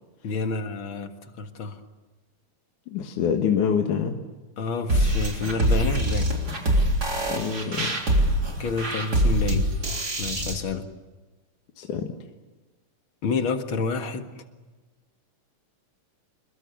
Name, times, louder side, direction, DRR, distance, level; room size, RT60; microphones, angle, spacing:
voice 1, 0.2-1.1 1.4-1.8 4.6-6.3 8.6-9.7 10.2-10.9 13.2-14.3, left 4 dB, 45° left, 6 dB, 2.1 m, -29 dB
voice 2, 2.9-4.2 7.3-8.0 11.8-12.1, left 7 dB, 70° left, 3 dB, 3.0 m, -25 dB
sound 1, 4.9-10.5, right 1 dB, 30° right, 3.8 m, -24 dB
29.0 x 22.5 x 7.1 m, 1.2 s
omnidirectional pair, 3.9 m